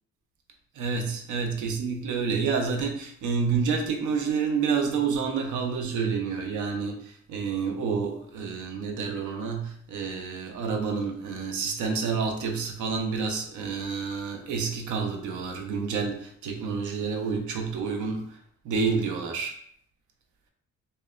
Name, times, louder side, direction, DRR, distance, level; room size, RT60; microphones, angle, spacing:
voice 1, 0.7-18.4 18.6-19.6, right 5 dB, 80° right, 3 dB, 0.6 m, -29 dB
2.8 x 2.1 x 2.3 m, 0.64 s
cardioid pair, 90°, 30 cm